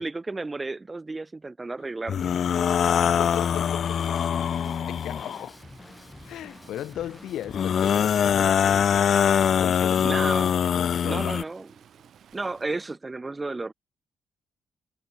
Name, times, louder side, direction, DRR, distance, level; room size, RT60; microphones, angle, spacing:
voice 1, 0.0-2.3 8.4-8.5 10.0-10.5 11.0-11.7 12.3-13.7, right 3 dB, 20° right, 0.4 m, -32 dB
sound 1, 2.1-5.5 7.5-11.4, left 8 dB, 55° left, 0.4 m, -23 dB
Drum kit / Drum, 2.2-11.4, left 2 dB, 15° left, 1.7 m, -48 dB
Stream, 2.9-12.7, right 9 dB, 60° right, 6.8 m, -55 dB
voice 2, 3.0-4.0 4.9-5.6 6.2-9.1 9.6-11.4, left 12 dB, 85° left, 2.6 m, -37 dB
cardioid pair, 125°, 0 cm